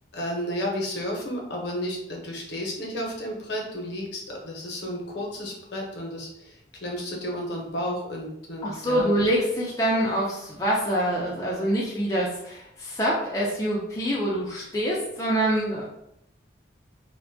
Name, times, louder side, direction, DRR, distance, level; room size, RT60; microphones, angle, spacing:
voice 1, 0.1-9.1, equal, 65° left, -1 dB, 0.7 m, -32 dB
voice 2, 8.6-15.8, right 1 dB, 15° left, -5 dB, 0.3 m, -25 dB
2.5 x 2.1 x 2.6 m, 0.79 s
head